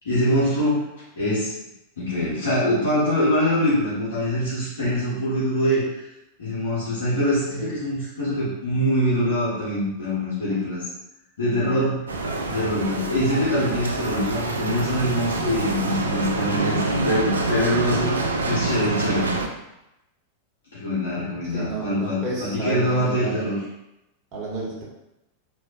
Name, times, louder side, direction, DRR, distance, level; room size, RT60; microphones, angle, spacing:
voice 1, 0.0-0.9 1.1-1.5 2.0-6.0 6.4-10.8 11.4-12.0 12.5-18.2 18.4-19.3 20.7-23.6, equal, 65° left, -10 dB, 1.4 m, -24 dB
Bicycle, 12.1-19.5, right 3 dB, 70° right, 0.4 m, -26 dB
voice 2, 21.4-23.5 24.3-24.8, right 2 dB, 35° right, -4 dB, 1.2 m, -31 dB
4.2 x 2.8 x 2.6 m, 0.90 s
figure-of-eight pair, 90°, 0 cm